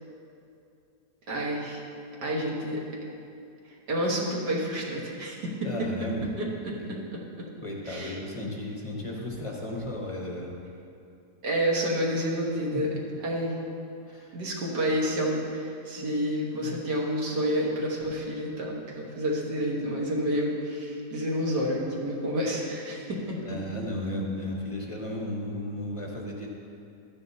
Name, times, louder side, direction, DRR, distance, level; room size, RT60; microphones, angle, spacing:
voice 1, 1.3-1.8 2.2-2.8 3.9-5.7 6.4-6.5 7.8-8.2 11.4-13.6 14.3-23.4, equal, 75° right, -3 dB, 1.9 m, -29 dB
voice 2, 5.6-6.3 6.8-6.9 7.6-10.5 14.1-14.3 16.0-16.1 16.6-16.8 23.5-26.5, left 1 dB, 25° left, -2 dB, 0.7 m, -34 dB
12.5 x 9.6 x 2.7 m, 2.6 s
omnidirectional pair, 1.8 m